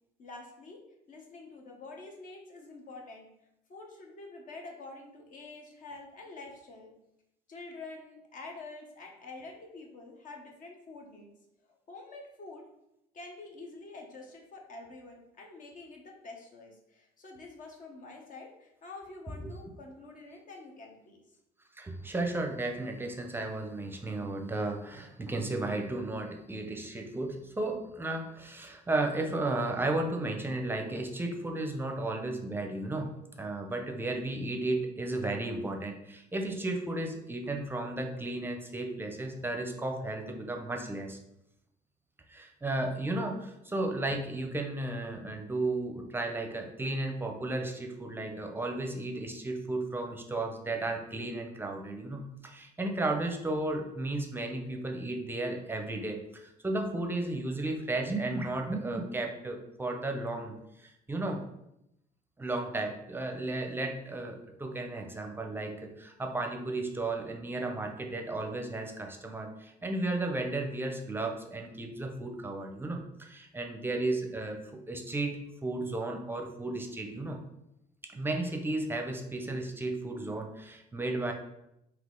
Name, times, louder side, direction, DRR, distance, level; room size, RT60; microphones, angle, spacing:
voice 1, 0.2-0.8 1.1-3.3 3.7-6.9 7.5-11.3 11.7-12.7 13.1-21.2, left 3 dB, 50° left, 1 dB, 0.9 m, -47 dB
voice 2, 21.7-33.1 33.4-41.2 42.3-61.4 62.4-77.4 78.1-81.3, right 2 dB, 15° right, 3 dB, 0.6 m, -34 dB
4.0 x 2.8 x 3.7 m, 0.84 s
cardioid pair, 110°, 17 cm